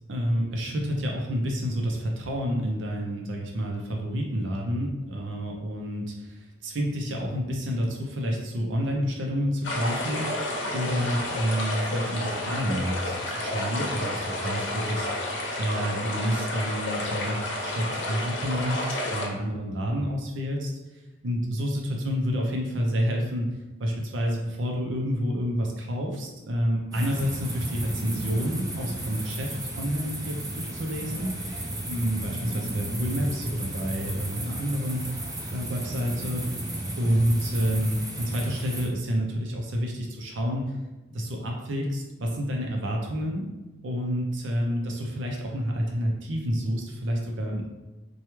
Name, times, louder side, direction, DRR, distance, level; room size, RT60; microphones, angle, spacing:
voice 1, 0.1-15.1 15.6-17.4 17.6-20.7 21.2-23.5 23.8-35.0 35.5-36.4 37.0-40.7 41.1-43.5 43.8-47.7, equal, 75° right, 1 dB, 0.6 m, -29 dB
sound 1, 9.6-19.3, left 1 dB, 80° left, 0.7 m, -31 dB
sound 2, 26.9-38.9, right 1 dB, 20° right, 0.5 m, -34 dB
4.5 x 2.3 x 3.0 m, 1.1 s
head